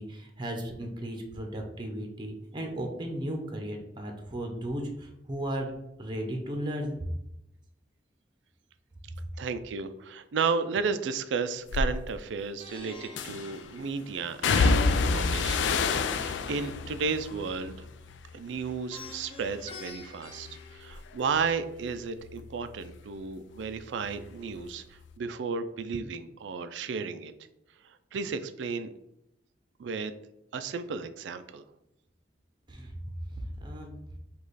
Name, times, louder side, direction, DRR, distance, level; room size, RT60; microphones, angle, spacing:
voice 1, 0.0-5.7 6.0-7.0 32.7-32.9 33.6-33.9, right 1 dB, 25° right, 3 dB, 0.7 m, -35 dB
voice 2, 9.4-17.8 18.3-27.3 28.1-28.9 29.8-30.1 30.5-31.6, right 5 dB, 85° right, 11 dB, 0.4 m, -33 dB
sound 1, 11.7-11.9 13.2-13.6 14.4-18.7 19.0-19.6 20.0-23.3 23.5-24.7 25.0-25.1, left 4 dB, 90° left, 0.4 m, -29 dB
Plucked string instrument, 12.6-14.8 18.9-21.5, left 3 dB, 30° left, 0.6 m, -47 dB
5.0 x 2.4 x 4.0 m, 0.83 s
head